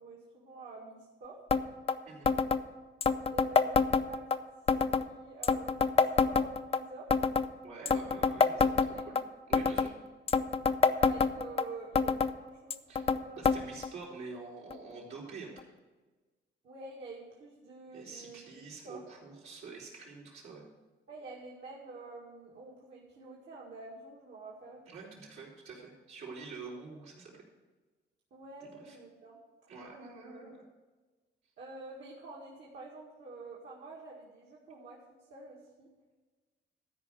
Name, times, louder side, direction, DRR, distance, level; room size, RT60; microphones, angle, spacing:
voice 1, 0.0-1.4 3.3-4.3 4.9-7.3 8.8-9.1 10.9-13.4 13.7-13.8 16.6-19.0 21.1-24.9 28.3-29.4 31.6-35.0 35.3-35.9, right 3 dB, 65° right, -5 dB, 2.0 m, -48 dB
sound 1, 1.5-1.6 1.9-2.0 2.3-2.6 3.0-4.4 4.7-5.1 5.4-6.8 7.1-7.5 7.9-9.2 9.5-9.9 10.3-11.6 12.0-12.3 12.7-13.2 13.5-13.6 13.8-13.9 14.7-14.8 15.6-15.7, left 5 dB, 30° left, 0.5 m, -26 dB
voice 2, 7.6-9.2 9.5-9.9 12.9-13.0 13.4-15.6 17.9-20.7 24.9-27.4 28.6-29.0 29.7-30.7, right 4 dB, 85° right, -5 dB, 4.2 m, -47 dB
13.5 x 5.0 x 8.2 m, 1.3 s
cardioid pair, 90°, 20 cm